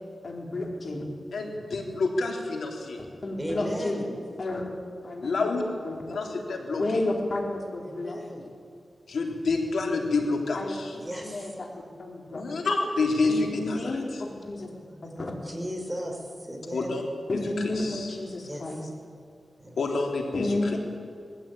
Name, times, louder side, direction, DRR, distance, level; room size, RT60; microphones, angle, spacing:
voice 1, 0.2-1.0 3.2-4.1 4.4-4.7 5.0-5.4 5.8-6.2 6.7-8.2 10.5-10.8 11.2-12.4 13.2-14.7 15.0-15.3 17.3-18.9 20.3-20.8, left 2 dB, 55° left, 0 dB, 4.4 m, -31 dB
voice 2, 1.3-3.0 5.2-5.6 6.1-7.0 9.1-11.0 12.3-14.2 16.7-17.0 17.3-18.1 19.8-20.5, left 3 dB, 85° left, 1 dB, 3.5 m, -28 dB
voice 3, 3.4-4.0 7.8-8.4 10.9-11.6 14.9-17.0 18.5-18.9 19.6-20.0, equal, 5° right, 2 dB, 4.8 m, -36 dB
19.5 x 15.5 x 9.0 m, 2.3 s
wide cardioid pair, 75°, 0 cm